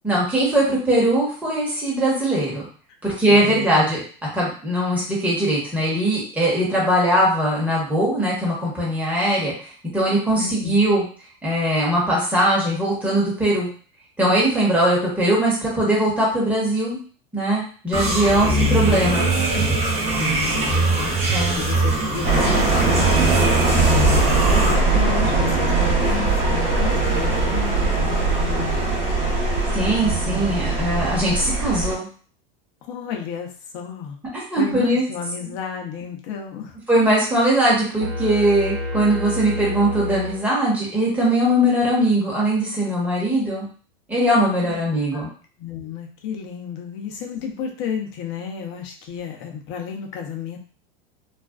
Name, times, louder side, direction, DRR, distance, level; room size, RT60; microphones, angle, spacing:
voice 1, 0.0-2.6 3.0-4.0 4.3-9.5 9.9-11.0 11.4-13.7 14.2-17.0 17.3-19.2 21.3-21.6 29.7-32.1 34.3-35.0 36.9-43.6 44.1-45.3, right 1 dB, 5° right, -6 dB, 0.9 m, -20 dB
voice 2, 3.3-3.9 10.4-10.8 18.4-18.5 18.8-19.8 20.1-28.8 32.8-33.5 33.7-34.2 34.6-36.7 44.6-44.8 45.1-45.2 45.6-50.6, left 7 dB, 45° left, 2 dB, 0.6 m, -32 dB
sound 1, 17.9-24.7, right 2 dB, 20° right, 0.6 m, -21 dB
sound 2, 22.2-32.0, right 3 dB, 45° right, 1.1 m, -21 dB
sound 3, 38.0-40.9, left 2 dB, 70° right, 0.9 m, -29 dB
2.4 x 2.2 x 2.3 m, 0.42 s
supercardioid pair, 130°, 29 cm